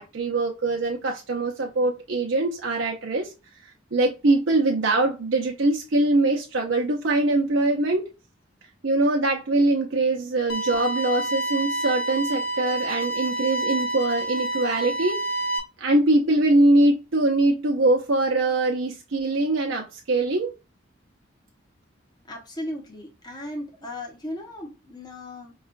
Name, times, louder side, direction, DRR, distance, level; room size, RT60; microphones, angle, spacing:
voice 1, 0.0-3.3 3.6-8.1 8.8-15.2 15.8-20.5, right 2 dB, 80° right, 0.7 m, -23 dB
sound 1, 10.5-15.6, right 1 dB, 65° left, 0.9 m, -28 dB
voice 2, 22.3-25.5, left 1 dB, 20° left, 0.9 m, -36 dB
5.4 x 2.4 x 2.3 m
head